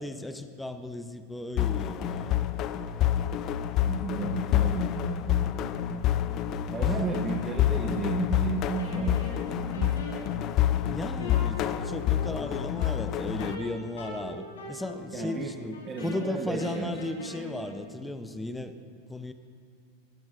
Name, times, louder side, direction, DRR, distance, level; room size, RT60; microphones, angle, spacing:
voice 1, 0.0-2.3 6.8-6.9 10.9-18.8 19.1-19.3, left 1 dB, 5° left, 9 dB, 0.6 m, -35 dB
sound 1, 1.6-13.5, left 11 dB, 45° left, 0.4 m, -28 dB
voice 2, 3.8-6.1 6.7-9.2 9.5-10.2 15.1-15.5 15.8-16.9, right 4 dB, 25° right, 0 dB, 1.0 m, -33 dB
Wind instrument woodwind instrument, 8.8-17.8, left 2 dB, 80° left, 2.2 m, -42 dB
17.0 x 10.5 x 2.5 m, 2.2 s
hypercardioid pair, 100°, 0 cm